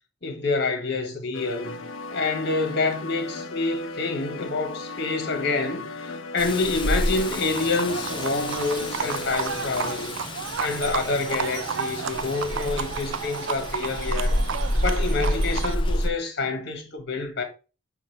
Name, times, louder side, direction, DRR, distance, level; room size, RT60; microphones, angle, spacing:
voice 1, 0.2-1.8 2.1-14.4 14.8-17.4, left 3 dB, 50° left, 1.5 m, -27 dB
sound 1, 1.3-10.1, left 2 dB, 70° left, 0.8 m, -37 dB
Rain, 6.4-16.1, left 1 dB, 25° left, 0.6 m, -29 dB
Livestock farm animals working animals, 7.1-15.7, right 7 dB, 60° right, 0.4 m, -32 dB
7.3 x 2.7 x 5.2 m
head